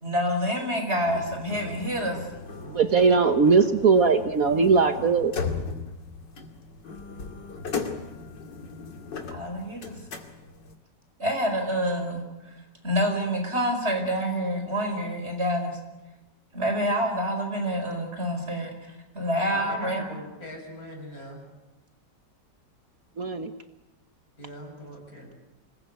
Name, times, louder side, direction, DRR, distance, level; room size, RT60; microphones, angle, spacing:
voice 1, 0.0-2.3 9.3-10.0 11.2-12.6 12.8-15.7 16.5-20.2, equal, 35° right, 4 dB, 5.2 m, -27 dB
sound 1, 1.1-10.7, left 4 dB, 85° left, 3.0 m, -37 dB
voice 2, 2.7-5.3 23.2-23.5, right 5 dB, 55° right, 8 dB, 1.5 m, -20 dB
voice 3, 19.5-21.4 24.4-25.3, left 1 dB, 55° left, 1 dB, 7.8 m, -40 dB
26.0 x 20.0 x 9.4 m, 1.0 s
omnidirectional pair, 1.9 m